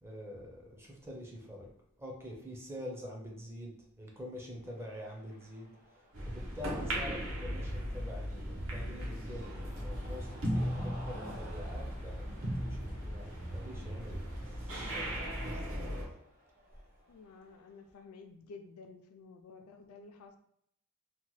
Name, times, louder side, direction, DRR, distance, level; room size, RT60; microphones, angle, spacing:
voice 1, 0.0-1.7 2.0-5.7 6.3-12.2 12.6-15.6, equal, 10° right, -1 dB, 0.5 m, -46 dB
Cheering, 4.5-18.0, equal, 40° right, 1.0 m, -57 dB
sound 1, 6.1-16.1, equal, 60° right, 0.8 m, -37 dB
voice 2, 17.1-20.4, left 4 dB, 70° left, 7 dB, 0.3 m, -52 dB
2.8 x 2.1 x 3.0 m, 0.72 s
head